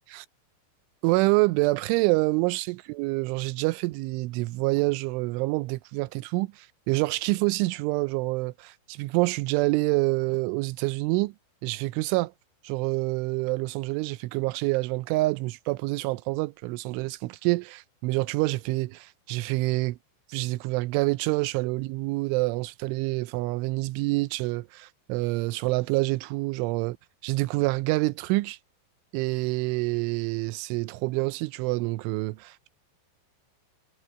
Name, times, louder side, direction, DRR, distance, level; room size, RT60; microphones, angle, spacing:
voice 1, 1.0-11.3 11.6-12.3 12.6-20.0 20.3-27.0 27.2-28.6 29.1-32.7, right 22 dB, 85° right, 2.9 m, -27 dB
omnidirectional pair, 5.7 m